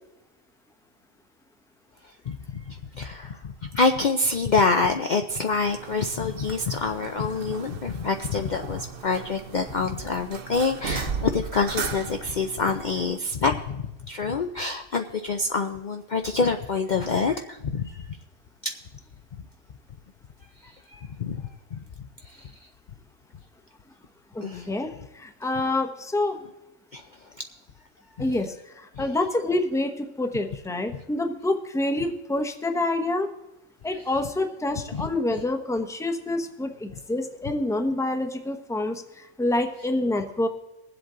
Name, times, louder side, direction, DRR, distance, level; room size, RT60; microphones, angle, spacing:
voice 1, 2.3-3.4 3.7-17.8 18.6-18.7 20.6-21.8 22.2-22.5 24.4-24.7 26.9-27.0 29.0-29.1 34.9-35.1, left 4 dB, 45° left, 5 dB, 0.6 m, -26 dB
sound 1, 5.5-13.2, right 6 dB, 55° right, 0.9 m, -37 dB
voice 2, 24.3-26.5 28.2-33.3 33.8-40.5, left 2 dB, 5° left, 6 dB, 0.8 m, -27 dB
22.0 x 7.9 x 3.8 m, 0.93 s
omnidirectional pair, 1.3 m